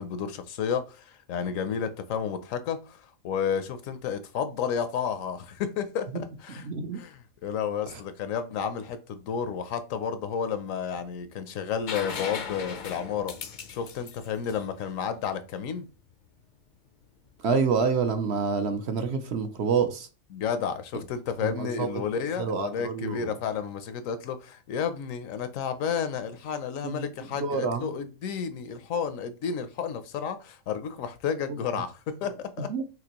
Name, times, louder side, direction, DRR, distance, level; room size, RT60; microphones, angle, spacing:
voice 1, 0.0-6.6 6.9-13.3 13.7-15.9 20.3-32.7, left 7 dB, 75° left, 1.0 m, -31 dB
voice 2, 6.6-7.0 7.9-8.0 17.4-20.1 21.4-22.0 22.4-23.3 26.8-27.1 27.4-27.9 32.7-32.8, right 5 dB, 60° right, 0.8 m, -27 dB
sound 1, 11.9-15.6 17.4-17.5, left 6 dB, 55° left, 0.5 m, -38 dB
5.9 x 3.0 x 2.9 m
omnidirectional pair, 1.4 m